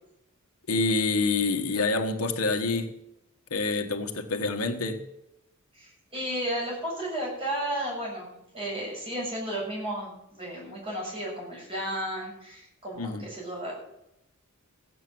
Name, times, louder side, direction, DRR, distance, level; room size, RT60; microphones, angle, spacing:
voice 1, 0.7-2.9 3.5-5.0 13.0-13.2, left 3 dB, 80° left, 4 dB, 1.4 m, -27 dB
voice 2, 5.7-8.3 8.5-13.7, right 1 dB, 25° right, -3 dB, 7.3 m, -33 dB
15.5 x 8.4 x 7.8 m, 0.84 s
head